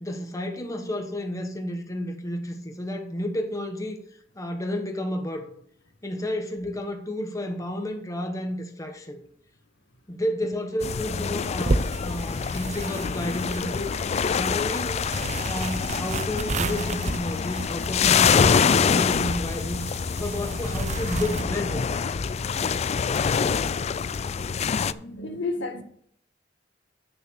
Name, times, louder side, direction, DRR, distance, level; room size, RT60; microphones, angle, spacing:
voice 1, 0.0-4.0 4.3-5.5 6.0-9.2 10.1-13.9 14.3-15.0 15.4-19.9 20.2-22.0 22.6-22.8 24.9-25.0, left 1 dB, 20° left, 1.2 m, -31 dB
sound 1, 10.8-24.9, left 6 dB, 35° left, 0.3 m, -25 dB
sound 2, 11.6-21.4, right 3 dB, 40° right, 0.5 m, -33 dB
voice 2, 24.3-25.8, left 3 dB, 75° left, 1.7 m, -34 dB
9.1 x 6.7 x 6.3 m
head